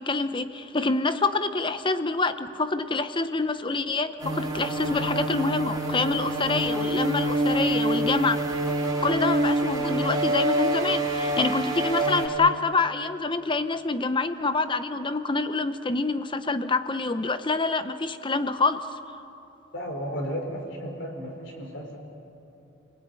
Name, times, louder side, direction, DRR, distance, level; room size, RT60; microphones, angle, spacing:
voice 1, 0.0-8.4 9.0-19.0, left 3 dB, 25° left, 11 dB, 0.8 m, -26 dB
sound 1, 4.2-12.3, right 1 dB, 20° right, 4.0 m, -26 dB
voice 2, 19.7-22.0, equal, 60° left, 2 dB, 4.8 m, -34 dB
29.0 x 18.5 x 9.6 m, 2.9 s
head